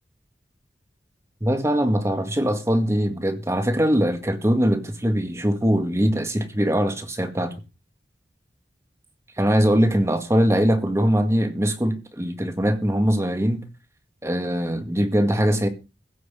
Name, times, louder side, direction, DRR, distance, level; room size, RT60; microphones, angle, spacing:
voice 1, 1.4-7.5 9.4-13.7 14.2-15.7, equal, 15° right, 1.9 m, -22 dB
16.0 x 6.2 x 7.6 m
head